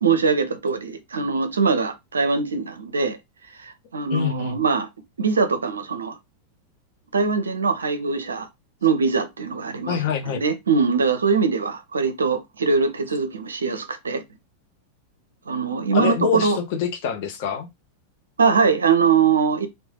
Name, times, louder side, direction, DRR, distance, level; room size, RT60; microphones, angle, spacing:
voice 1, 0.0-3.2 3.6-4.9 5.2-6.2 7.1-8.5 8.8-10.0 10.3-14.2 15.5-16.6 18.4-19.7, right 5 dB, 70° right, 0.5 m, -22 dB
voice 2, 4.1-4.6 9.9-10.4 15.9-17.7, left 7 dB, 50° left, 0.6 m, -25 dB
3.1 x 2.1 x 2.3 m
figure-of-eight pair, 90°, 0 cm